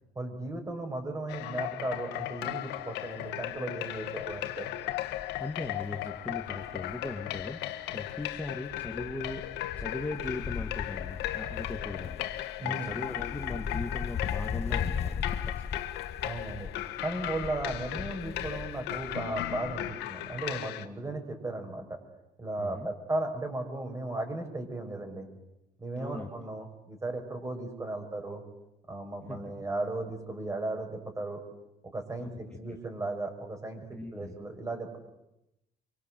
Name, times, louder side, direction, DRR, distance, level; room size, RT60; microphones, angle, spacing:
voice 1, 0.2-4.7 12.6-13.0 16.2-16.7 17.0-22.0 22.4-25.3 25.8-28.4 28.9-31.4 31.8-35.0, right 2 dB, 20° right, 5 dB, 6.1 m, -36 dB
sound 1, 1.3-20.9, left 14 dB, 90° left, 1.6 m, -37 dB
Wind, 3.0-3.3 3.7-3.8 4.0-7.6 7.9-20.1 20.3-20.4, left 7 dB, 40° left, 1.1 m, -39 dB
voice 2, 5.4-7.6 7.9-12.3 12.6-15.9 22.6-22.9 26.0-26.3 29.3-29.4 32.2-32.3 33.9-34.4, left 2 dB, 10° left, 1 dB, 2.2 m, -39 dB
25.5 x 24.0 x 7.9 m, 0.89 s
cardioid pair, 110°, 17 cm